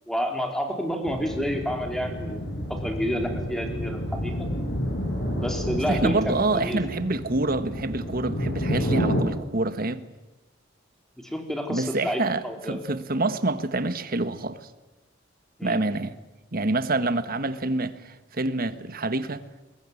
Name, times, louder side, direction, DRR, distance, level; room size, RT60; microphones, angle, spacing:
voice 1, 0.1-2.4 2.7-4.5 5.3-6.8 8.8-8.9 11.2-12.8 15.6-15.8, equal, ahead, 4.2 m, -29 dB
sound 1, 1.0-9.2, equal, 60° left, 5.9 m, -30 dB
voice 2, 5.9-10.0 11.7-14.7 15.6-16.1 16.5-19.4, right 2 dB, 50° right, 1.5 m, -27 dB
22.5 x 22.0 x 9.8 m
head